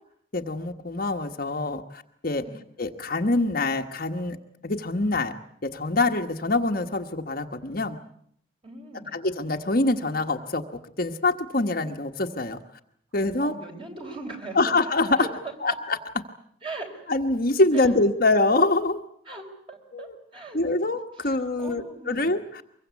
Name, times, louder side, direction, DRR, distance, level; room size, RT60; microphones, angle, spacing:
voice 1, 0.3-2.5 2.8-4.4 4.6-5.3 5.6-8.0 9.1-10.6 11.0-12.6 13.1-13.5 14.5-15.2 15.6-16.0 17.1-19.0 19.9-20.1 20.5-22.6, left 2 dB, 45° left, 4 dB, 1.3 m, -25 dB
voice 2, 8.6-9.2 13.4-14.6 15.1-15.7 16.6-17.1 17.7-17.9 19.3-20.7 21.2-22.3, right 2 dB, 25° right, 3 dB, 4.3 m, -40 dB
24.5 x 22.5 x 8.3 m, 0.66 s
head